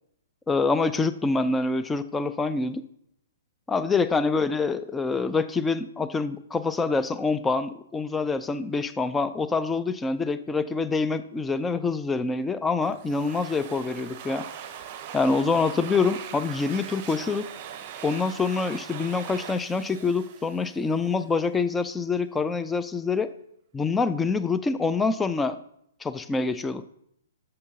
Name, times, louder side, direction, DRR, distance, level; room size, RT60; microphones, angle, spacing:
voice 1, 0.5-2.8 3.7-14.4 15.1-17.5 18.0-23.3 23.7-25.6 26.0-26.8, left 4 dB, 10° left, 12 dB, 0.4 m, -26 dB
Domestic sounds home sounds, 12.8-21.3, right 9 dB, 35° right, 0.7 m, -41 dB
11.5 x 6.6 x 2.8 m, 0.73 s
figure-of-eight pair, 120°, 0 cm